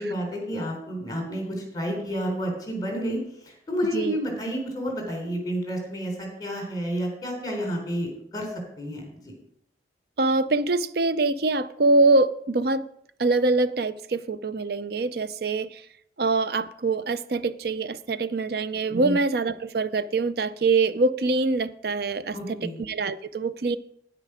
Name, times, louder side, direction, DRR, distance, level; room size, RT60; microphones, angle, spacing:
voice 1, 0.0-8.5 8.8-9.3 19.0-19.1 22.3-22.8, equal, 20° left, 3.5 m, -30 dB
voice 2, 10.2-12.8 13.2-15.8 16.2-23.8, right 3 dB, 60° right, 0.5 m, -24 dB
9.9 x 9.6 x 4.9 m
head